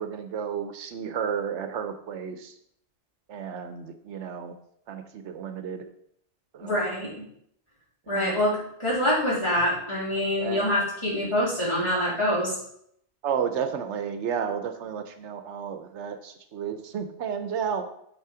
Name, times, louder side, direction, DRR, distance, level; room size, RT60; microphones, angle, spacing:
voice 1, 0.0-2.5 3.3-4.5 4.9-5.9 6.5-6.8 8.1-8.3 10.4-10.7 13.2-17.9, right 7 dB, 80° right, 8 dB, 1.0 m, -32 dB
voice 2, 6.6-7.1 8.1-12.6, left 1 dB, 25° left, -8 dB, 3.4 m, -25 dB
8.3 x 4.2 x 4.9 m, 0.71 s
omnidirectional pair, 1.2 m